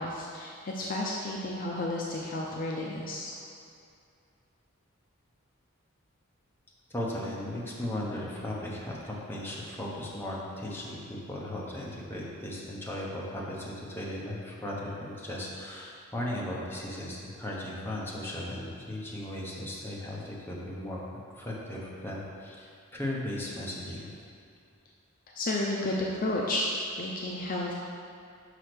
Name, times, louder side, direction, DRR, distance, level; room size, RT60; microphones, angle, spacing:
voice 1, 0.0-3.3 25.3-26.7 27.0-27.7, left 1 dB, 40° left, -2 dB, 0.5 m, -32 dB
voice 2, 6.9-21.0 21.3-24.1, left 1 dB, 10° left, -5 dB, 1.0 m, -36 dB
5.5 x 5.0 x 6.0 m, 2.5 s
head